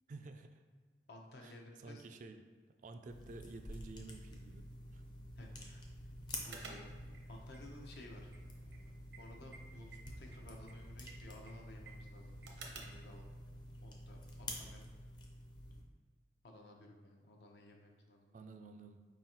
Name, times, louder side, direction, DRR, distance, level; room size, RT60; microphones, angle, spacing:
voice 1, 0.1-0.6 1.4-1.5 1.8-2.5 2.8-4.6 4.9-5.0 18.3-19.1, right 3 dB, 45° right, 7 dB, 0.3 m, -51 dB
voice 2, 1.1-2.0 5.4-5.8 6.4-6.9 7.3-8.3 9.2-12.4 12.7-13.2 13.8-14.9 16.4-18.4, left 1 dB, 65° left, 1 dB, 0.7 m, -55 dB
sound 1, 3.1-15.8, left 1 dB, 25° left, 0.5 m, -49 dB
sound 2, 6.4-13.1, right 3 dB, 80° right, 0.7 m, -56 dB
4.8 x 3.8 x 2.9 m, 1.5 s
head